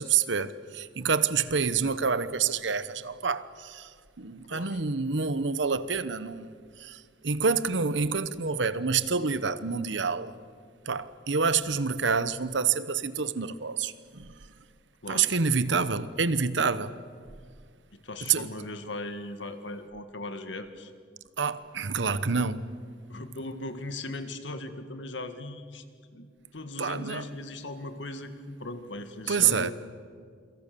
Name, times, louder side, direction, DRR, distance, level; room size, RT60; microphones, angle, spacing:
voice 1, 0.0-3.9 4.2-6.5 6.8-10.3 10.9-14.3 15.1-16.9 18.3-18.5 21.4-22.7 26.8-27.2 29.3-29.7, right 5 dB, 75° right, 1.0 m, -27 dB
voice 2, 4.5-4.8 15.0-15.3 17.9-20.9 23.1-25.8 26.1-26.3 26.5-29.7, left 2 dB, 75° left, 2.0 m, -38 dB
28.5 x 23.0 x 6.9 m
head